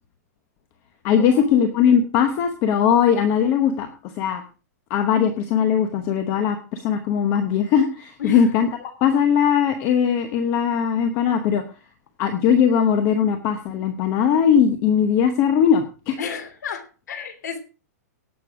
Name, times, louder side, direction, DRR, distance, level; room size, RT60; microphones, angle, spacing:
voice 1, 1.0-4.4 4.9-11.6 12.2-16.2, left 8 dB, 25° left, 8 dB, 0.9 m, -20 dB
voice 2, 16.2-17.6, left 6 dB, 80° left, 9 dB, 3.0 m, -32 dB
17.5 x 6.9 x 4.8 m, 0.34 s
hypercardioid pair, 175°, 9 cm